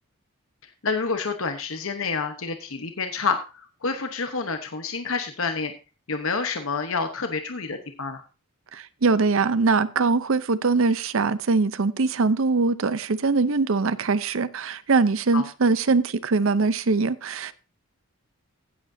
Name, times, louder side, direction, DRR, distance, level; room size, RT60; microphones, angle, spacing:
voice 1, 0.6-5.7 6.1-8.2 15.3-15.5, left 4 dB, 65° left, 7 dB, 1.0 m, -28 dB
voice 2, 8.7-17.5, right 4 dB, 65° right, 15 dB, 0.6 m, -22 dB
16.0 x 7.9 x 2.7 m, 0.32 s
head